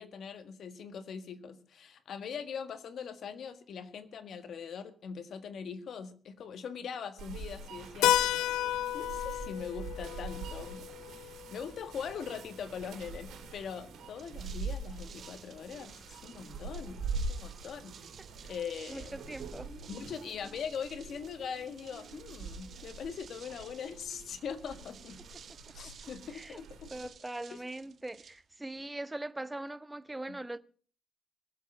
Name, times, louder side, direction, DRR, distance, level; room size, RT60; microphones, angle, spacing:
voice 1, 0.0-8.1 8.9-10.8 11.1-18.0 18.4-19.2 19.9-25.2 25.7-27.1 27.5-27.6 30.3-30.4, left 6 dB, 60° left, 1.7 m, -41 dB
sound 1, 7.2-27.1, right 3 dB, 80° right, 3.4 m, -44 dB
Keyboard (musical), 8.0-12.5, left 13 dB, 90° left, 0.6 m, -32 dB
sound 2, 14.2-28.9, right 7 dB, 55° right, 1.6 m, -55 dB
voice 2, 18.9-19.7 26.3-26.6 26.9-30.6, right 2 dB, 10° right, 0.8 m, -41 dB
21.5 x 7.6 x 5.5 m
cardioid pair, 90°, 0 cm